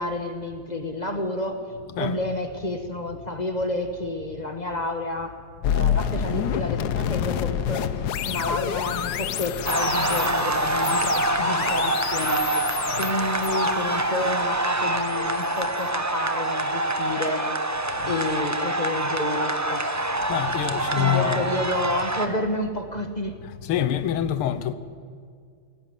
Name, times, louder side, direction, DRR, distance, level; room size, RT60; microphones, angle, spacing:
voice 1, 0.0-1.6 2.0-5.4 5.7-7.9 8.2-12.4 13.0-17.5 18.0-19.8 21.0-23.3, left 2 dB, 25° left, 1.1 m, -30 dB
sound 1, 5.6-16.7, left 9 dB, 65° left, 1.0 m, -29 dB
sound 2, 9.6-22.3, right 2 dB, 25° right, 0.3 m, -26 dB
voice 2, 20.3-21.5 23.7-24.7, left 10 dB, 85° left, 1.8 m, -25 dB
18.5 x 16.5 x 9.6 m
omnidirectional pair, 2.4 m